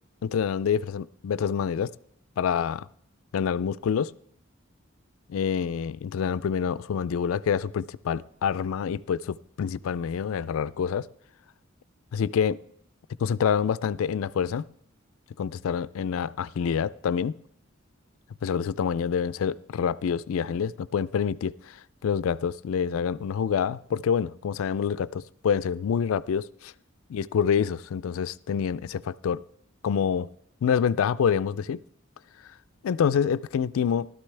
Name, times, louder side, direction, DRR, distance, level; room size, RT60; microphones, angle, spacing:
voice 1, 0.2-1.9 2.4-2.9 3.3-4.1 5.3-11.1 12.1-12.6 13.2-14.6 15.4-17.4 18.4-21.8 22.0-26.5 27.1-29.4 29.8-30.3 30.6-31.8 32.8-34.1, left 7 dB, 85° left, 18 dB, 0.3 m, -27 dB
15.0 x 12.0 x 3.3 m, 0.69 s
head